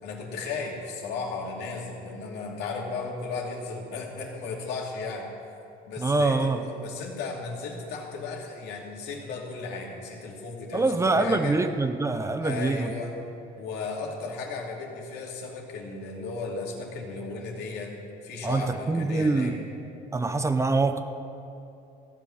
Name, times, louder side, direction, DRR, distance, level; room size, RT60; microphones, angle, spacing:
voice 1, 0.0-5.3 5.9-11.6 12.4-13.1 13.6-17.9 18.2-19.5, left 4 dB, 65° left, -1 dB, 2.6 m, -35 dB
voice 2, 6.0-6.6 10.7-12.9 18.4-19.6 20.1-21.0, right 3 dB, 15° right, 9 dB, 0.7 m, -24 dB
15.5 x 6.1 x 9.0 m, 2.7 s
supercardioid pair, 100°, 18 cm